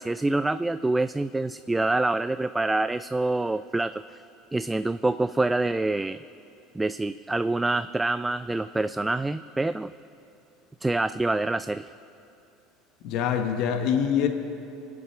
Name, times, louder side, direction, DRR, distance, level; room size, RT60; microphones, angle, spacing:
voice 1, 0.0-4.2 4.5-6.2 6.7-9.9 10.8-11.9, right 2 dB, 10° right, 13 dB, 0.3 m, -26 dB
voice 2, 13.0-14.3, left 8 dB, 65° left, 6 dB, 1.1 m, -24 dB
24.5 x 8.5 x 5.9 m, 2.8 s
supercardioid pair, 100°, 0 cm